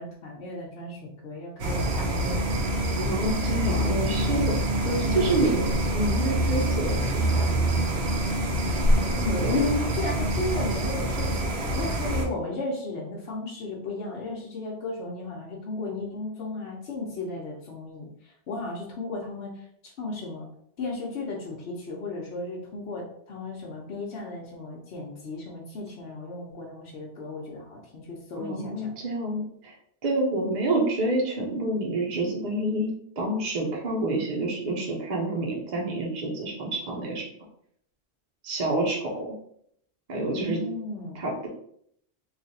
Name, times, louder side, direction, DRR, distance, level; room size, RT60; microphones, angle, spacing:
voice 1, 0.0-2.4 4.8-5.4 8.9-11.3 11.7-19.6 19.8-20.5 20.8-28.9 40.3-41.2, left 2 dB, 75° left, -4 dB, 1.0 m, -34 dB
sound 1, 1.6-12.2, right 1 dB, 75° right, 1.0 m, -25 dB
voice 2, 3.0-4.5 5.1-5.7 5.9-7.4 9.4-9.5 28.4-29.7 30.0-37.3 38.4-39.3 40.1-40.6 41.1-41.5, right 2 dB, 45° right, -1 dB, 0.8 m, -28 dB
3.2 x 2.5 x 4.0 m, 0.69 s
omnidirectional pair, 1.1 m